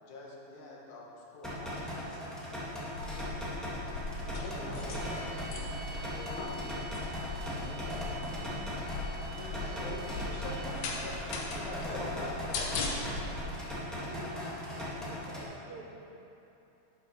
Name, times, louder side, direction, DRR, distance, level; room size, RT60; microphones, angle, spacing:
voice 1, 0.0-2.2 4.3-4.8 6.3-6.6 9.3-12.6 12.9-13.0 14.0-14.2 15.0-15.1, left 2 dB, 85° left, 2.7 m, -44 dB
sound 1, 1.4-15.4, left 1 dB, ahead, 0.9 m, -39 dB
sound 2, 2.9-13.4, left 3 dB, 70° left, 1.9 m, -39 dB
voice 2, 4.6-5.7 6.0-6.2 7.5-8.6, right 1 dB, 35° right, 1.8 m, -46 dB
sound 3, 4.7-10.9, right 3 dB, 35° left, 1.2 m, -50 dB
voice 3, 14.0-14.4 14.9-16.1, right 3 dB, 80° right, 2.8 m, -48 dB
11.5 x 5.7 x 5.0 m
omnidirectional pair, 3.3 m